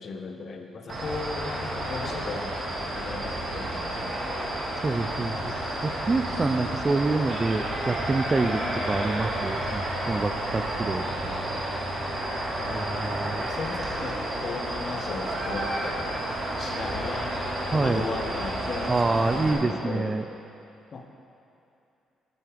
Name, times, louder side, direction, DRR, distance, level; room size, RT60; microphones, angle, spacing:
voice 1, 0.0-2.6 2.9-4.1 8.6-8.8 12.6-16.0 16.6-17.4 17.7-20.2 20.9-21.1, left 4 dB, 50° left, 4 dB, 0.7 m, -36 dB
sound 1, 0.9-19.5, right 1 dB, 50° right, 1.8 m, -31 dB
voice 2, 4.8-5.4 5.8-11.4 12.7-13.5 17.7-18.1 18.9-20.2, right 3 dB, 25° right, 8 dB, 0.3 m, -27 dB
9.3 x 7.6 x 3.4 m, 2.7 s
cardioid pair, 90°, 0 cm